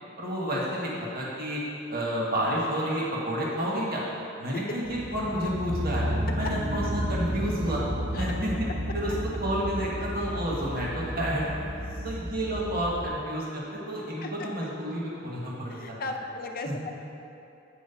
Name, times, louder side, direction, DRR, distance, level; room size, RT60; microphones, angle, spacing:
voice 1, 0.2-1.6 1.9-4.0 4.4-6.0 6.3-7.8 8.2-8.7 8.9-9.1 9.4-11.5 12.0-15.9 16.6-16.7, equal, 50° right, -4 dB, 1.5 m, -30 dB
voice 2, 4.5-4.9 6.4-6.5 8.1-8.3 11.9-12.1 14.2-14.5 15.7-16.9, left 3 dB, 50° left, 4 dB, 0.6 m, -36 dB
sound 1, 4.8-13.1, equal, 75° right, 1.6 m, -32 dB
8.6 x 4.5 x 5.7 m, 2.8 s
head